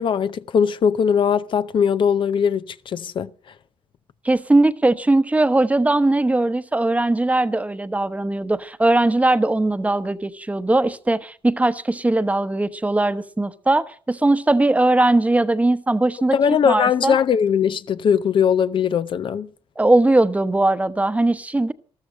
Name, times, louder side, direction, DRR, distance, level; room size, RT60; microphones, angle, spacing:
voice 1, 0.0-3.3 16.3-19.5, left 7 dB, 55° left, 0.6 m, -20 dB
voice 2, 4.2-17.2 19.8-21.7, right 2 dB, 15° right, 1.0 m, -19 dB
13.5 x 13.0 x 6.3 m
cardioid pair, 80°, 10 cm